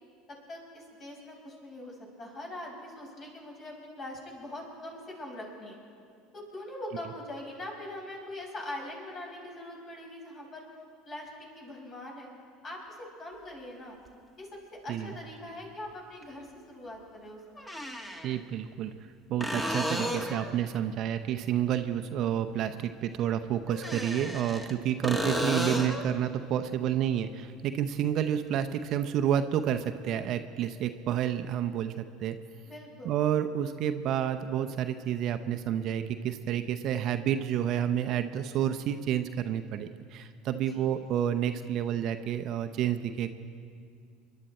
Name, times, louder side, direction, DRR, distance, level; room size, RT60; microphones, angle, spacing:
voice 1, 0.5-5.8 6.3-10.6 11.1-11.3 11.6-12.3 12.6-14.0 14.4-14.5 14.8-17.6 32.7-33.2 40.7-40.9, left 1 dB, 40° left, -1 dB, 5.5 m, -42 dB
sound 1, 14.1-14.2 16.2-16.3 17.6-18.3 19.4-20.5 23.7-24.7 25.0-26.1 29.7-29.8, equal, 10° left, 1.7 m, -32 dB
voice 2, 18.2-18.9 19.3-32.4 33.0-43.3, right 10 dB, 55° right, 8 dB, 0.7 m, -30 dB
28.5 x 11.5 x 4.3 m, 2.3 s
hypercardioid pair, 70°, 0 cm